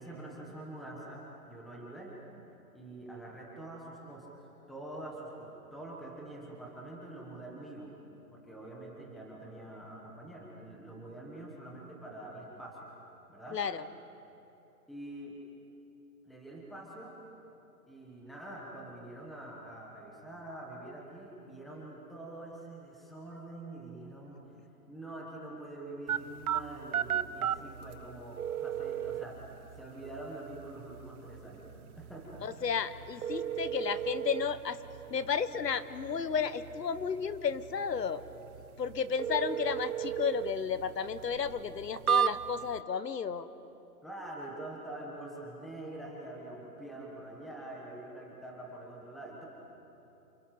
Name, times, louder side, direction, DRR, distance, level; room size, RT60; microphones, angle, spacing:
voice 1, 0.0-2.1 2.7-7.9 8.3-12.9 13.3-13.6 14.9-15.4 16.2-17.2 17.9-24.4 24.9-29.4 29.8-31.7 31.9-32.5 44.0-49.5, right 1 dB, ahead, -3 dB, 1.3 m, -45 dB
voice 2, 13.5-13.8 32.4-34.8 35.1-38.2 38.8-43.5, left 6 dB, 85° left, 13 dB, 1.5 m, -33 dB
sound 1, 26.1-42.8, right 9 dB, 65° right, 0.9 m, -36 dB
29.5 x 28.5 x 6.0 m, 2.9 s
hypercardioid pair, 170°, 48 cm